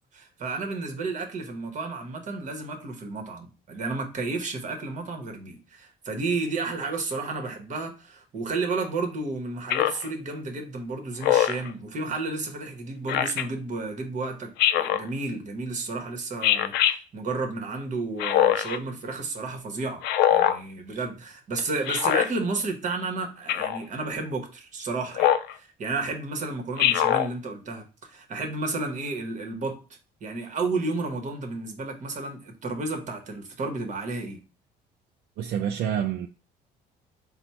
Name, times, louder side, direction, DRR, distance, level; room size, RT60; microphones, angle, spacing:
voice 1, 0.1-20.0 20.3-29.8 30.2-34.4, right 3 dB, 45° right, 1.1 m, -32 dB
Speech synthesizer, 9.7-10.1 11.2-11.7 13.1-13.4 14.6-15.1 16.4-16.9 18.2-18.8 20.0-20.6 21.9-22.3 23.5-23.8 25.2-25.5 26.8-27.3, left 11 dB, 80° left, 0.4 m, -22 dB
voice 2, 35.4-36.3, right 9 dB, 70° right, 0.4 m, -27 dB
4.2 x 2.1 x 4.3 m
cardioid pair, 110°, 17 cm